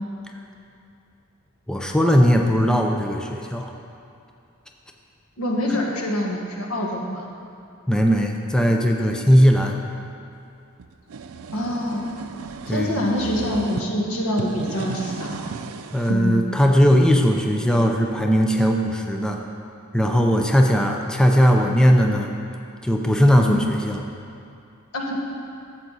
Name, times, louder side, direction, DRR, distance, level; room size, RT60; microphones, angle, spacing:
voice 1, 1.7-3.7 5.7-5.8 7.9-9.8 12.7-13.1 15.9-19.4 19.9-22.3 22.8-24.0, equal, 5° left, 1 dB, 0.5 m, -18 dB
voice 2, 5.4-7.3 11.5-12.1 12.7-15.5 16.1-16.4 23.4-23.6 24.9-25.2, left 1 dB, 80° left, -1 dB, 1.6 m, -25 dB
sound 1, 10.8-13.9 14.3-16.2, right 5 dB, 80° right, 0.5 m, -35 dB
13.0 x 7.8 x 4.1 m, 2.6 s
head